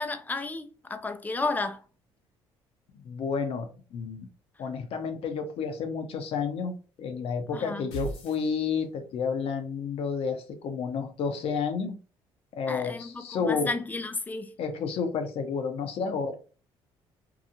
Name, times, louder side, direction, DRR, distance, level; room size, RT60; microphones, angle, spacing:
voice 1, 0.0-1.8 7.5-7.9 12.7-14.5, left 3 dB, 15° left, 0.4 m, -32 dB
voice 2, 3.0-4.3 4.6-12.0 12.5-13.7 14.6-16.3, left 5 dB, 60° left, 0.7 m, -31 dB
sound 1, 7.9-9.2, right 4 dB, 85° left, 1.0 m, -38 dB
2.8 x 2.3 x 2.6 m
supercardioid pair, 70°, 11 cm